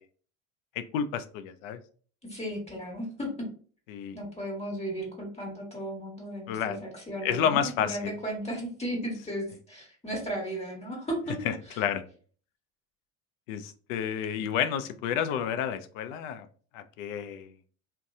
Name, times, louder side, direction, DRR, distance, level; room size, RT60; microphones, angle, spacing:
voice 1, 0.8-1.8 3.9-4.2 6.5-6.8 7.2-8.1 11.5-12.0 13.5-16.5 16.7-17.5, left 8 dB, 90° left, 11 dB, 0.5 m, -30 dB
voice 2, 2.2-3.3 4.1-11.3 11.7-11.8, right 1 dB, 15° left, -1 dB, 1.2 m, -35 dB
2.7 x 2.2 x 3.5 m, 0.43 s
supercardioid pair, 105°, 39 cm